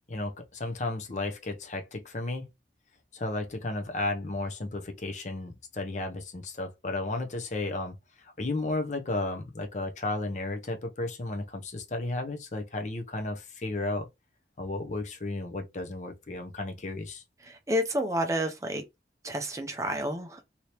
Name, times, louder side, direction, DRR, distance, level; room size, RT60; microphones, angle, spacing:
voice 1, 0.1-2.5 3.1-14.1 14.6-17.2, left 2 dB, 40° left, 0.6 m, -33 dB
voice 2, 17.4-18.8 19.2-20.4, equal, 20° right, 0.5 m, -30 dB
3.2 x 2.8 x 2.9 m
head